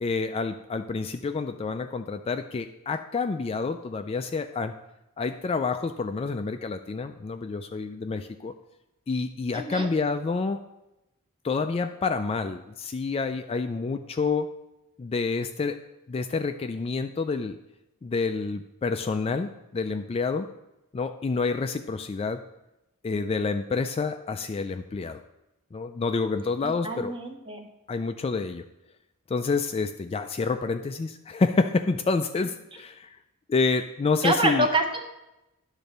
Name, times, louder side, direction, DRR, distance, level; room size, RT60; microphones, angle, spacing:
voice 1, 0.0-4.7 5.2-8.5 9.1-10.6 11.4-14.5 15.0-15.8 16.1-17.6 18.0-20.5 20.9-22.4 23.0-25.2 25.7-27.1 27.9-28.6 29.3-33.2 33.5-34.7, left 4 dB, 25° left, 8 dB, 0.3 m, -28 dB
voice 2, 9.5-9.9 26.6-27.7 34.2-35.0, right 2 dB, 25° right, 4 dB, 1.0 m, -26 dB
10.0 x 4.0 x 6.6 m, 0.92 s
head